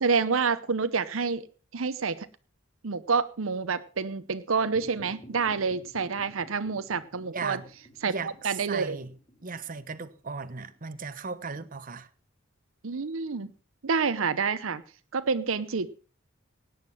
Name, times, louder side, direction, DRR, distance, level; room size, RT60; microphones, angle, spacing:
voice 1, 0.0-1.4 1.7-2.3 2.8-7.6 8.0-8.1 8.4-9.0 12.8-13.5 13.8-14.8 15.1-15.9, right 5 dB, 80° right, 0.8 m, -28 dB
sound 1, 4.6-11.2, equal, 25° left, 2.6 m, -52 dB
voice 2, 7.3-7.7 8.1-9.1 9.4-12.1, right 4 dB, 45° right, 1.0 m, -36 dB
17.0 x 9.6 x 5.6 m
head